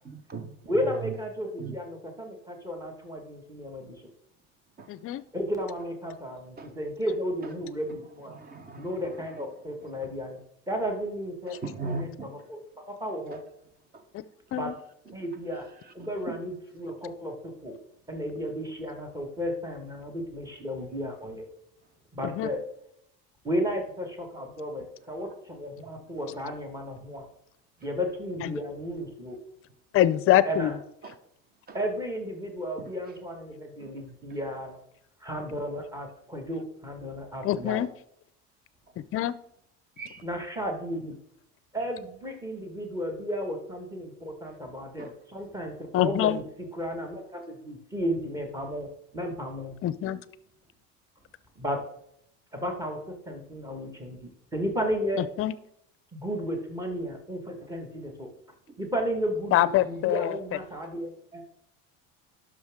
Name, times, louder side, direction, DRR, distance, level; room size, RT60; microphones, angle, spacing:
voice 1, 0.0-0.7 1.0-1.1 1.6-1.7 4.8-4.9 6.6-6.7 7.9-8.0 8.3-9.4 11.6-12.3 13.3-13.4 13.9-14.0 15.1-15.2 16.0-16.4 25.3-25.4 31.0-31.2 31.7-31.8 32.8-32.9 33.8-33.9 34.3-34.4 40.0-40.2 45.0-45.1 57.6-57.7 58.7-58.8, right 4 dB, 30° right, 1.0 m, -39 dB
voice 2, 0.6-4.1 5.3-8.3 8.7-10.4 10.7-12.6 12.9-13.4 14.5-14.7 15.1-15.7 15.9-17.8 18.1-21.4 22.1-22.6 23.4-27.3 27.8-29.4 30.4-30.7 31.7-34.8 35.2-37.8 40.2-41.2 41.7-46.4 46.7-49.7 51.5-51.8 52.5-55.2 56.1-58.3 58.8-61.4, equal, 10° right, 1.6 m, -33 dB
voice 3, 4.9-5.2 14.1-14.2 14.5-14.7 22.2-22.5 28.4-28.6 29.9-30.8 37.4-37.9 39.0-39.3 45.9-46.4 49.8-50.2 55.2-55.5 59.5-60.6, left 13 dB, 45° left, 0.5 m, -25 dB
11.0 x 6.2 x 3.6 m
cardioid pair, 125°, 33 cm